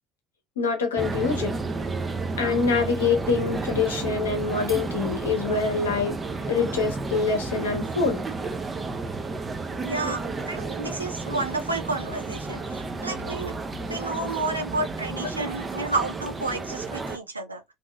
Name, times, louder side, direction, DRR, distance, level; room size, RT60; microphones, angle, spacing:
voice 1, 0.6-1.5 2.4-6.2 6.5-8.3, left 4 dB, 75° left, 0.8 m, -25 dB
sound 1, 1.0-17.2, right 3 dB, 20° right, 0.5 m, -32 dB
voice 2, 9.8-13.5 13.9-17.6, right 3 dB, 85° right, 0.5 m, -31 dB
2.7 x 2.6 x 2.2 m
figure-of-eight pair, 60°, 0 cm